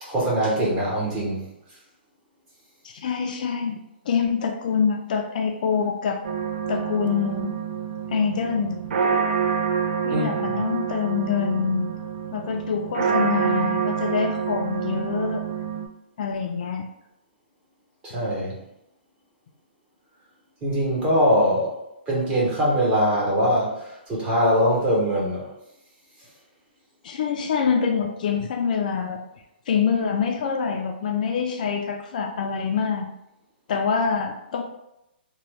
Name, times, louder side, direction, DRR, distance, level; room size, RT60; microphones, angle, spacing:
voice 1, 0.0-1.4 10.1-10.5 18.1-18.6 20.6-21.7 22.1-23.7 24.1-25.5, equal, 20° right, -5 dB, 0.8 m, -22 dB
voice 2, 2.8-3.8 4.1-6.2 6.7-7.5 8.1-8.8 10.0-11.9 12.3-15.4 16.2-16.8 27.0-29.2 29.7-33.1 33.7-34.6, left 6 dB, 50° left, 3 dB, 0.3 m, -25 dB
sound 1, 6.2-15.9, right 6 dB, 60° right, 0.4 m, -27 dB
2.9 x 2.1 x 3.1 m, 0.86 s
hypercardioid pair, 165°, 6 cm